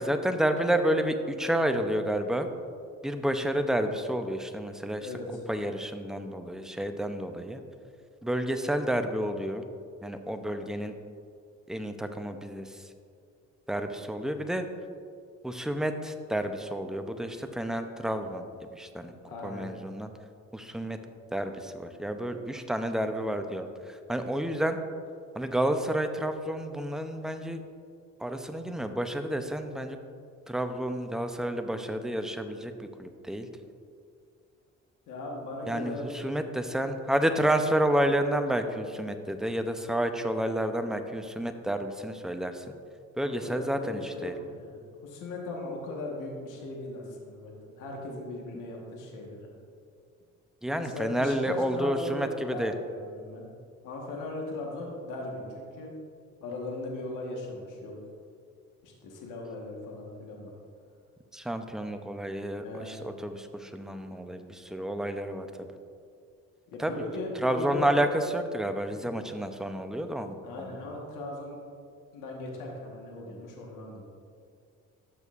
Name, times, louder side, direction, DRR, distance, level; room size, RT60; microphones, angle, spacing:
voice 1, 0.0-2.5 3.0-5.1 5.5-7.6 8.2-9.6 10.0-10.9 11.7-12.8 13.7-14.7 15.4-19.1 19.4-20.1 20.5-21.0 21.3-24.8 25.4-27.6 28.2-30.0 30.5-33.5 35.7-42.6 43.2-44.3 50.6-52.7 61.3-65.7 66.8-67.0 67.4-70.8, right 1 dB, ahead, 7 dB, 0.5 m, -30 dB
voice 2, 5.0-5.4 19.2-19.7 35.1-36.1 43.2-47.5 47.8-49.5 50.7-53.5 53.8-55.9 56.4-57.9 58.8-60.5 62.6-63.0 66.7-68.1 68.9-69.0 70.4-71.6 72.1-74.0, left 2 dB, 90° left, -1 dB, 1.4 m, -38 dB
12.0 x 6.3 x 2.5 m, 2.3 s
cardioid pair, 90°, 30 cm